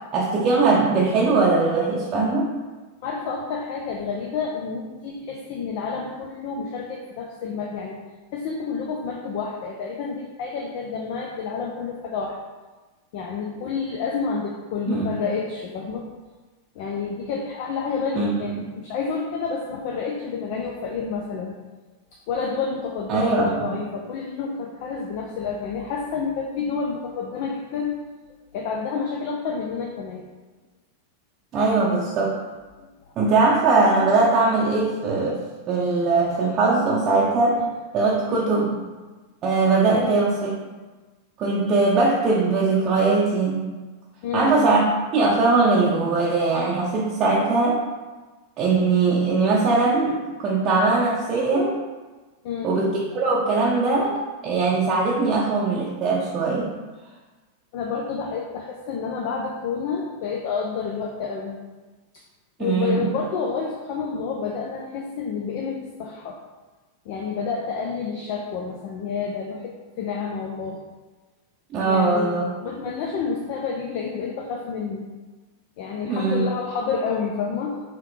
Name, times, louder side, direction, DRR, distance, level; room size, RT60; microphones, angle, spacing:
voice 1, 0.1-2.5 14.9-15.1 18.2-18.7 23.1-23.7 31.5-32.4 33.2-37.6 37.9-38.8 39.4-40.5 41.4-43.6 44.3-44.9 45.1-47.8 48.6-51.7 52.6-54.2 54.4-56.7 62.6-63.1 71.7-72.5 76.0-76.4, right 3 dB, 30° right, -5 dB, 0.6 m, -21 dB
voice 2, 3.0-8.0 8.3-12.4 13.1-16.1 16.7-21.6 22.3-28.0 28.5-30.3 33.0-33.1 37.6-37.7 38.3-38.5 39.9-40.2 44.2-44.7 52.4-52.7 57.7-61.6 62.6-66.4 67.1-70.8 71.9-75.1 75.8-77.8, left 5 dB, 45° left, 0 dB, 0.5 m, -29 dB
4.8 x 2.9 x 3.1 m, 1.3 s
figure-of-eight pair, 90°, 0 cm